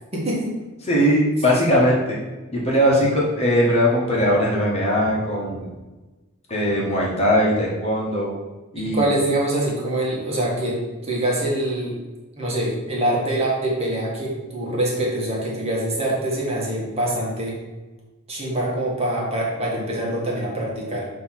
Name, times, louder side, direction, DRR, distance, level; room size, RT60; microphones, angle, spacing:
voice 1, 0.1-0.5 8.8-12.0 12.4-17.5 18.3-21.1, right 1 dB, 30° right, -4 dB, 1.6 m, -24 dB
voice 2, 0.9-2.2 2.5-5.7 6.5-8.3 8.7-9.0, equal, 30° left, -4 dB, 1.4 m, -20 dB
6.7 x 3.2 x 5.7 m, 1.2 s
head